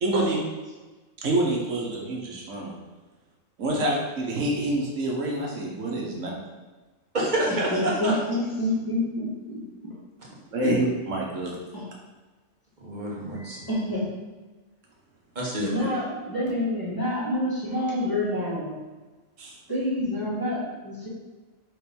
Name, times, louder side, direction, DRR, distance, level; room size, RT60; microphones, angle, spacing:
voice 1, 0.0-0.4 1.2-2.7 3.6-6.3 10.5-11.5 19.4-19.6, right 2 dB, 90° right, -1 dB, 1.5 m, -27 dB
voice 2, 7.1-8.1 10.6-10.7 12.8-13.7 15.3-15.7, right 1 dB, 40° right, -4 dB, 1.4 m, -28 dB
voice 3, 7.7-9.6 11.7-11.9 13.7-14.1 15.6-18.8 19.7-21.1, left 1 dB, 15° left, -8 dB, 1.8 m, -27 dB
4.8 x 3.9 x 5.3 m, 1.3 s
omnidirectional pair, 1.3 m